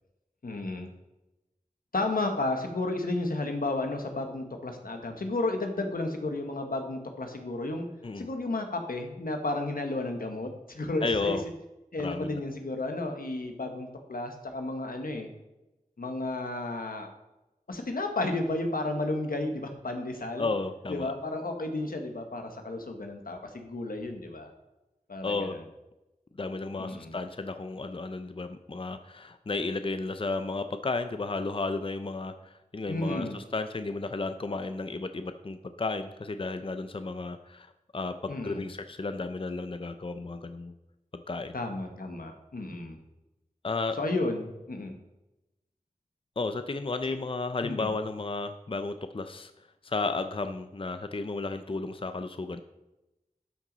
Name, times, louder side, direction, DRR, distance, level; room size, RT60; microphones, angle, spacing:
voice 1, 0.4-0.9 1.9-7.9 8.1-11.4 11.9-15.3 16.0-17.1 17.7-20.5 20.9-24.5 25.1-25.6 26.8-27.2 32.9-33.4 38.3-38.7 41.5-43.0 44.0-44.9 47.1-47.2 47.6-47.9, left 2 dB, 85° left, 4 dB, 1.1 m, -32 dB
voice 2, 11.0-11.4 12.0-12.4 20.4-21.1 25.2-25.6 26.4-37.7 37.9-40.7 41.1-41.6 43.6-44.0 46.4-49.5 49.8-52.6, left 3 dB, 40° left, 9 dB, 0.5 m, -33 dB
12.5 x 6.0 x 4.0 m, 0.98 s
wide cardioid pair, 45°, 14 cm